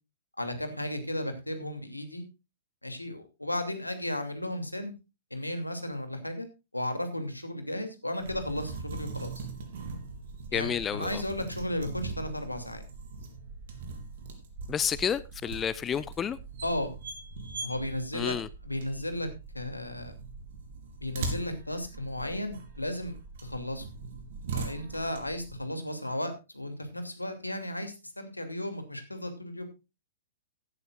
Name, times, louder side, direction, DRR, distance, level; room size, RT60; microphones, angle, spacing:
voice 1, 0.4-2.2 2.8-4.9 5.3-6.5 6.7-9.5 10.5-12.8 16.6-16.9 17.6-18.4 18.6-20.1 21.0-23.9 24.5-29.6, left 1 dB, 85° left, 2.6 m, -34 dB
sound 1, 8.2-25.6, right 4 dB, 50° right, 3.4 m, -41 dB
voice 2, 10.5-11.2 14.7-16.4 18.1-18.5, left 8 dB, 20° left, 0.5 m, -30 dB
16.0 x 12.0 x 2.5 m
figure-of-eight pair, 110°, 0 cm